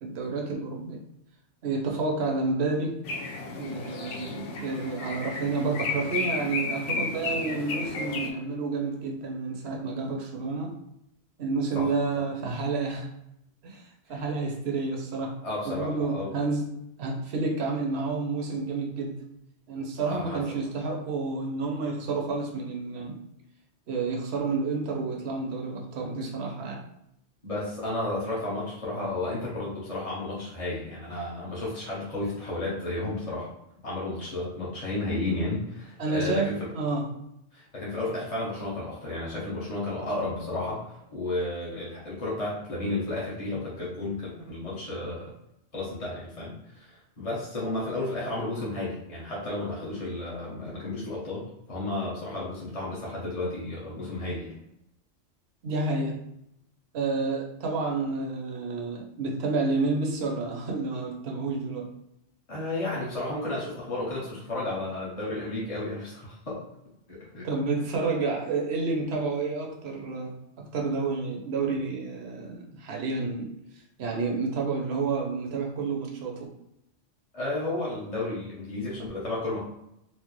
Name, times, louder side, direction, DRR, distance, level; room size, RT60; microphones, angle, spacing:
voice 1, 0.0-1.0 1.6-3.0 3.5-10.7 11.4-13.1 13.6-15.4 15.6-19.2 19.7-23.2 23.9-26.8 36.0-37.1 55.6-56.2 56.9-61.9 67.4-73.5 74.0-76.5, right 3 dB, 65° right, 1 dB, 1.0 m, -30 dB
sound 1, 3.0-8.3, left 3 dB, 85° left, 1.0 m, -33 dB
voice 2, 15.4-16.3 20.1-20.4 27.4-33.5 33.8-36.7 37.5-45.3 45.7-54.6 62.5-66.6 67.1-67.5 77.3-79.6, left 2 dB, 35° left, -7 dB, 1.1 m, -32 dB
4.4 x 2.0 x 3.1 m, 0.81 s
omnidirectional pair, 1.2 m